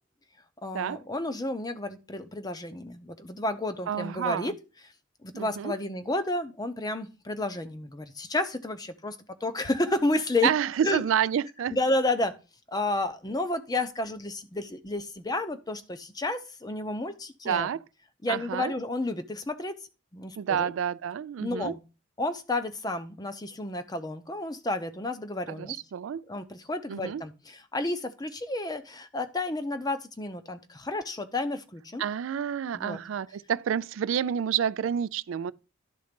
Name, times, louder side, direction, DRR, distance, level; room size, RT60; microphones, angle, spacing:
voice 1, 0.6-4.5 5.2-10.5 10.8-11.0 11.7-12.3 12.7-17.7 18.2-19.7 20.1-20.7 21.4-21.8 22.2-25.8 26.3-32.0 32.7-33.0, left 2 dB, 20° left, 0.7 m, -31 dB
voice 2, 3.9-4.5 5.3-5.7 10.4-11.8 17.4-17.8 18.3-18.7 20.4-21.8 25.5-26.2 26.9-27.2 32.0-35.5, right 8 dB, 75° right, 0.3 m, -29 dB
11.5 x 3.9 x 5.2 m
head